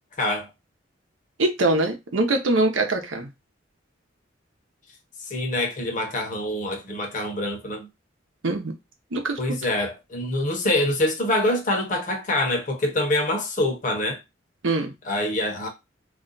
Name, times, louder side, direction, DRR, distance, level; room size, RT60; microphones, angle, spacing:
voice 1, 0.2-0.5 5.2-7.9 9.4-14.2 15.0-15.7, left 1 dB, 40° left, 0.8 m, -25 dB
voice 2, 1.4-3.3 8.4-8.7 9.1-9.6 14.6-14.9, right 2 dB, 85° right, 0.8 m, -23 dB
2.4 x 2.2 x 3.8 m
head